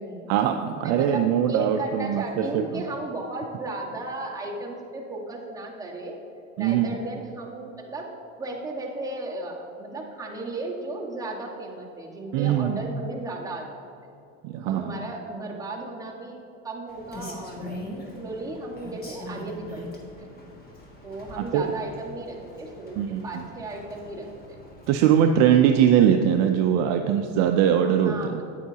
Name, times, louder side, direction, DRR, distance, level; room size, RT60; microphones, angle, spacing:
voice 1, 0.3-2.8 6.6-6.9 12.3-12.8 14.4-15.0 21.3-21.6 23.0-23.3 24.9-28.4, right 9 dB, 45° right, 5 dB, 0.5 m, -21 dB
voice 2, 0.8-6.2 6.6-8.1 8.4-13.7 14.7-16.4 16.6-17.8 18.1-19.8 20.2-20.3 21.0-24.6 28.0-28.4, right 2 dB, 10° right, -4 dB, 1.5 m, -35 dB
Rain, 16.9-25.1, left 1 dB, 25° left, 1.6 m, -42 dB
9.3 x 9.1 x 2.8 m, 2.7 s
supercardioid pair, 115°, 36 cm